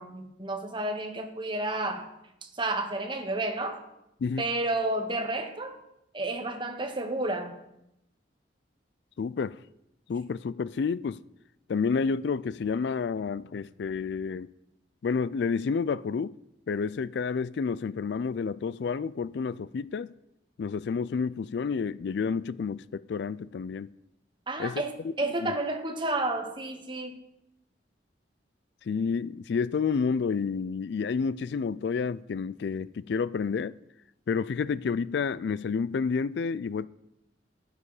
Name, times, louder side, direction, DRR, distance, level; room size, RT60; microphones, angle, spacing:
voice 1, 0.0-2.1 2.4-3.8 4.4-5.7 6.1-7.6 24.5-27.2, right 2 dB, 25° right, 1.2 m, -31 dB
voice 2, 9.2-9.6 10.1-11.2 11.7-14.5 15.0-16.4 16.7-20.1 20.6-23.9 24.6-25.1 25.4-25.5 28.9-33.8 34.3-36.9, left 5 dB, 65° left, 0.3 m, -30 dB
12.5 x 9.8 x 4.9 m
head